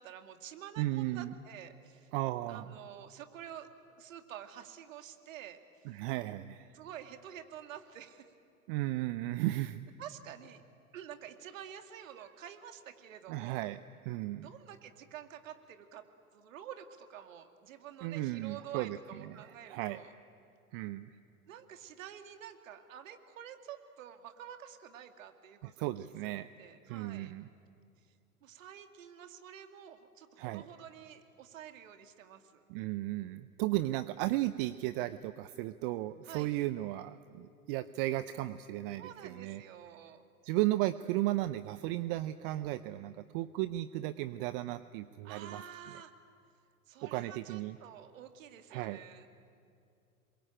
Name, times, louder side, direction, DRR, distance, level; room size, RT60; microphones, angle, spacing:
voice 1, 0.0-2.1 2.5-6.1 6.7-8.3 10.0-10.6 10.9-13.7 14.4-16.1 16.3-20.1 21.5-27.3 28.1-28.2 28.4-32.6 36.2-36.5 39.0-40.2 45.2-46.1 46.9-49.3, right 10 dB, 60° right, 7 dB, 2.4 m, -49 dB
voice 2, 0.8-1.3 2.1-2.7 5.9-6.8 8.7-9.8 13.3-14.5 18.0-19.0 19.2-20.0 20.7-21.1 25.6-26.5 26.9-27.5 30.4-30.6 32.7-39.6 40.4-45.6 47.0-47.8 48.7-49.0, right 16 dB, 40° right, 14 dB, 0.7 m, -35 dB
27.5 x 22.5 x 9.0 m, 2.5 s
figure-of-eight pair, 100°, 44 cm